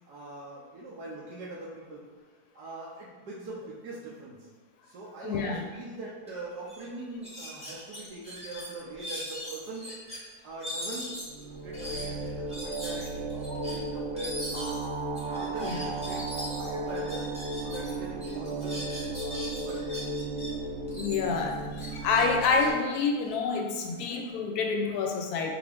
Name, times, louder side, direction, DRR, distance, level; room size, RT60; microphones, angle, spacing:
voice 1, 0.1-2.0 2.5-4.5 4.9-9.9 10.4-14.8 15.2-17.3 17.6-20.2, right 2 dB, 75° right, -6 dB, 1.3 m, -42 dB
voice 2, 5.2-5.6 13.5-13.7 15.6-15.8 20.5-20.7 20.9-25.5, left 4 dB, 70° left, 2 dB, 1.0 m, -28 dB
sound 1, 6.3-6.4 6.7-6.8 7.2-10.2 10.6-17.9 18.2-20.5 20.9-23.8, equal, 5° right, 0.8 m, -40 dB
sound 2, 11.1-22.7, right 2 dB, 55° right, 0.9 m, -35 dB
4.8 x 2.8 x 3.4 m, 1.4 s
omnidirectional pair, 1.8 m